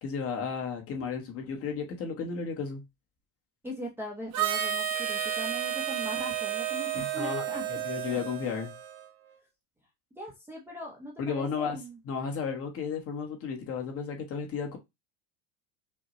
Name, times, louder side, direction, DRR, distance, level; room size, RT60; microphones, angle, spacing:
voice 1, 0.0-2.8 7.0-7.4 7.8-8.7 11.2-11.8 12.0-14.8, left 6 dB, 35° left, 1.1 m, -33 dB
voice 2, 3.6-7.7 8.1-8.2 10.2-12.0, equal, 5° right, 0.7 m, -40 dB
Harmonica, 4.3-9.1, right 9 dB, 40° right, 0.9 m, -32 dB
5.5 x 2.2 x 2.9 m
cardioid pair, 150°, 42 cm